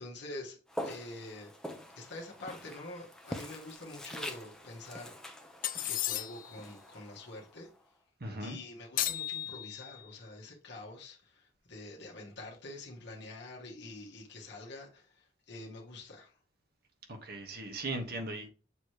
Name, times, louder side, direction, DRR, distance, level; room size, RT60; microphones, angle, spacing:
voice 1, 0.0-1.5 2.0-5.4 5.8-7.7 8.4-16.3, left 2 dB, 60° left, 1.4 m, -46 dB
Walk footsteps, 0.7-7.8, left 1 dB, 5° left, 0.7 m, -45 dB
sound 1, 5.6-6.6 9.0-10.1, left 13 dB, 45° left, 0.3 m, -35 dB
voice 2, 8.2-8.6 17.1-18.5, right 2 dB, 50° right, 1.2 m, -38 dB
7.0 x 3.0 x 4.7 m
head